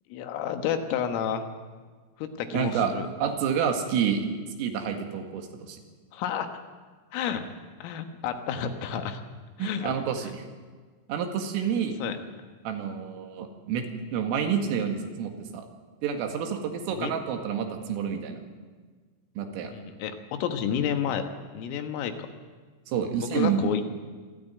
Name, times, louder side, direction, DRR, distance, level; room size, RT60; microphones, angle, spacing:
voice 1, 0.1-1.5 2.2-3.1 6.1-6.6 7.1-7.5 7.8-9.2 9.6-10.0 12.0-12.2 16.9-17.1 19.7-21.2 21.5-22.3 23.2-23.9, left 8 dB, 85° left, 7 dB, 4.0 m, -30 dB
voice 2, 2.5-2.9 3.2-4.3 4.6-5.8 9.6-10.3 11.1-12.0 12.6-13.9 14.1-15.7 16.0-18.4 19.4-19.7 22.9-23.7, right 7 dB, 85° right, 4 dB, 4.6 m, -28 dB
26.0 x 13.0 x 9.1 m, 1.5 s
omnidirectional pair, 5.8 m